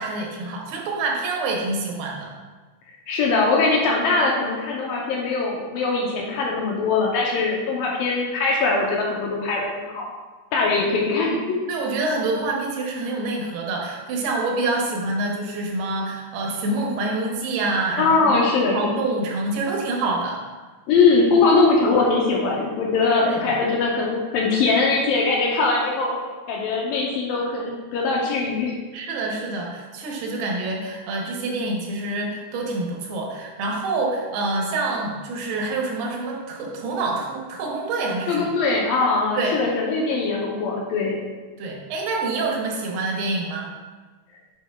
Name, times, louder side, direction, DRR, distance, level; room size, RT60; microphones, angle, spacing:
voice 1, 0.0-2.3 11.7-20.4 23.2-23.4 28.9-38.4 39.4-39.6 41.6-43.7, right 2 dB, 85° right, 0 dB, 3.0 m, -26 dB
voice 2, 3.1-10.1 10.5-11.6 18.0-18.9 20.9-26.2 26.5-28.8 38.3-41.2, left 3 dB, 80° left, -2 dB, 2.1 m, -21 dB
8.9 x 5.8 x 2.3 m, 1.3 s
omnidirectional pair, 4.5 m